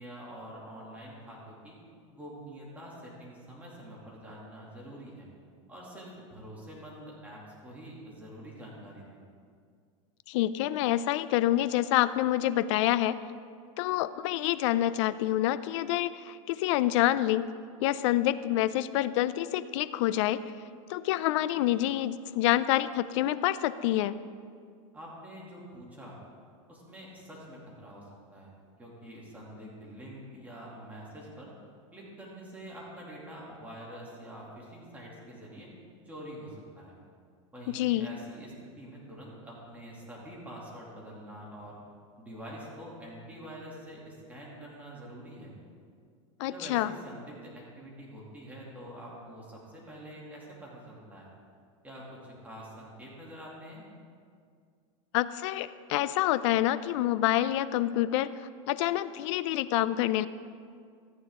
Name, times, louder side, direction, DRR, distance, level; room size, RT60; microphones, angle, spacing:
voice 1, 0.0-1.8 2.1-5.3 5.7-9.2 24.9-26.2 26.7-28.5 28.8-31.5 31.9-35.7 36.0-36.9 37.5-41.8 42.2-45.5 46.4-51.3 51.8-53.8, equal, 10° right, -5 dB, 2.7 m, -46 dB
voice 2, 10.3-13.2 13.8-17.5 17.8-20.4 20.9-24.1 37.7-38.1 46.4-46.9 55.1-60.3, left 14 dB, 65° left, 15 dB, 0.5 m, -27 dB
14.0 x 9.1 x 3.7 m, 2.2 s
supercardioid pair, 135°, 17 cm